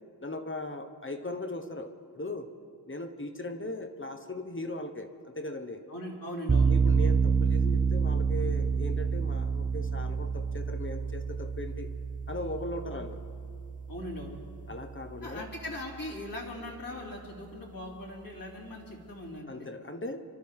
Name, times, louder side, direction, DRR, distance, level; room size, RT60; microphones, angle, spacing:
voice 1, 0.2-2.5 2.9-5.8 6.6-11.9 12.3-13.2 14.7-15.5 19.5-20.2, left 2 dB, 30° left, 7 dB, 1.2 m, -38 dB
voice 2, 5.9-6.7 12.9-13.0 13.9-14.4 15.2-19.7, left 1 dB, 55° left, -4 dB, 3.3 m, -40 dB
sound 1, 6.5-15.4, right 5 dB, 20° right, 0.4 m, -28 dB
25.0 x 12.5 x 3.7 m, 2.6 s
wide cardioid pair, 75°, 40 cm